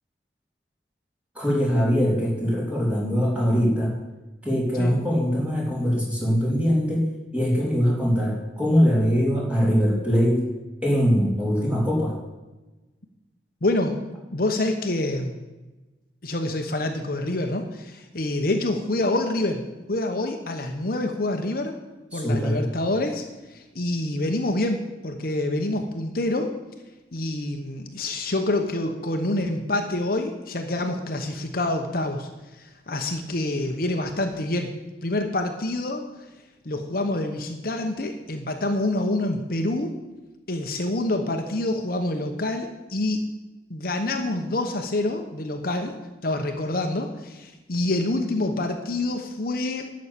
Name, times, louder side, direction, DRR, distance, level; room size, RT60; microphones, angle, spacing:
voice 1, 1.3-4.0 4.4-7.1 7.3-10.4 10.8-12.1 22.1-22.6, equal, 10° right, -4 dB, 3.3 m, -22 dB
voice 2, 13.6-14.0 14.3-15.4 16.2-19.6 19.9-21.8 22.1-26.5 27.1-34.7 35.0-36.1 36.6-40.0 40.5-43.3 43.7-45.9 46.2-49.9, left 2 dB, 55° left, 5 dB, 1.0 m, -27 dB
11.5 x 6.4 x 8.4 m, 1.1 s
head